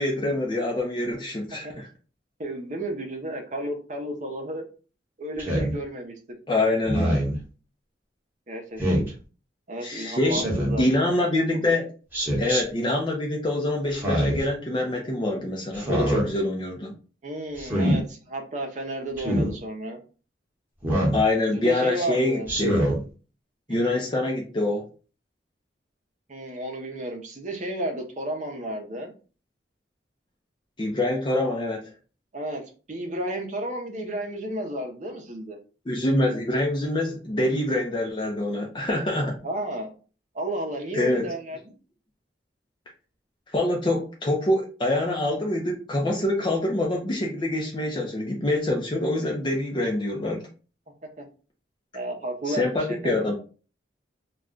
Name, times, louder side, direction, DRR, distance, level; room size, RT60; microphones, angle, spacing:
voice 1, 0.0-1.9 6.5-7.2 9.8-10.4 10.8-11.9 12.4-16.9 21.1-22.8 23.7-24.9 30.8-31.9 35.9-39.4 40.9-41.3 43.5-50.5 52.5-53.3, left 1 dB, 25° left, -1 dB, 0.5 m, -25 dB
voice 2, 2.4-4.6 5.2-6.1 8.5-9.0 9.7-10.9 11.5-11.7 17.2-20.0 21.5-22.5 23.7-24.0 26.3-29.1 32.3-35.6 39.4-39.9 40.3-41.7 51.2-51.3 51.9-53.3, right 1 dB, 45° right, 3 dB, 0.6 m, -32 dB
Speech synthesizer, 5.4-5.7 6.8-7.4 8.8-9.1 10.3-10.8 12.1-12.6 13.9-14.5 15.7-16.3 17.6-18.0 19.2-19.5 20.8-21.2 22.5-23.0, equal, 10° right, 0.9 m, -24 dB
2.3 x 2.2 x 3.7 m, 0.36 s
head